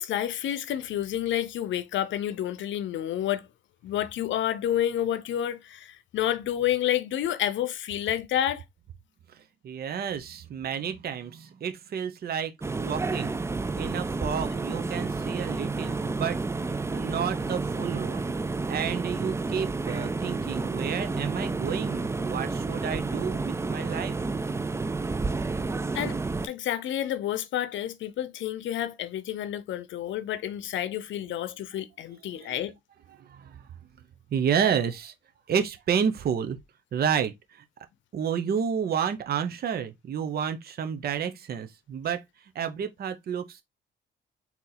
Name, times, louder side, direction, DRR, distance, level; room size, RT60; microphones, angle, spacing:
voice 1, 0.0-3.4 3.8-8.6 25.9-26.2 26.4-32.7, left 11 dB, 70° left, 0.6 m, -29 dB
voice 2, 9.4-12.5 12.8-13.4 13.7-16.4 16.7-18.3 18.7-24.2 31.3-31.4 32.1-32.6 33.1-33.7 34.3-35.1 35.5-36.6 36.9-37.6 38.1-42.2 42.5-43.6, right 7 dB, 50° right, 0.7 m, -30 dB
sound 1, 12.6-26.5, right 3 dB, 15° right, 0.4 m, -30 dB
4.0 x 2.9 x 3.9 m
cardioid pair, 90°, 20 cm